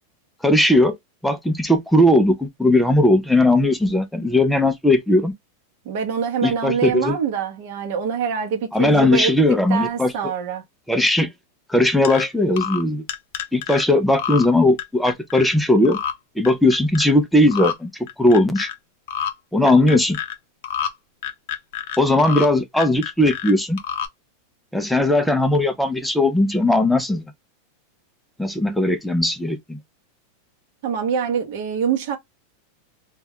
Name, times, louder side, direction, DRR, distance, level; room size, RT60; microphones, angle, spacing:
voice 1, 0.4-0.9 1.2-5.3 6.4-7.2 8.7-10.1 10.9-11.3 11.7-13.0 13.5-16.0 16.4-17.9 18.2-18.7 19.5-20.2 22.0-23.8 24.7-27.3 28.4-29.8, left 1 dB, ahead, 0.4 m, -18 dB
voice 2, 5.8-9.3 9.7-10.6 30.8-32.2, right 7 dB, 50° right, 0.7 m, -24 dB
sound 1, 12.0-12.2 12.6-12.8 13.1-13.8 14.2-14.5 14.8-15.5 15.8-16.1 16.4-17.1 17.5-17.7 18.1-18.7 19.1-19.3 19.7-20.3 20.6-20.9 21.2-22.5 22.7-23.5 23.8-24.1, left 9 dB, 55° left, 0.5 m, -28 dB
2.3 x 2.2 x 3.4 m
supercardioid pair, 170°, 0 cm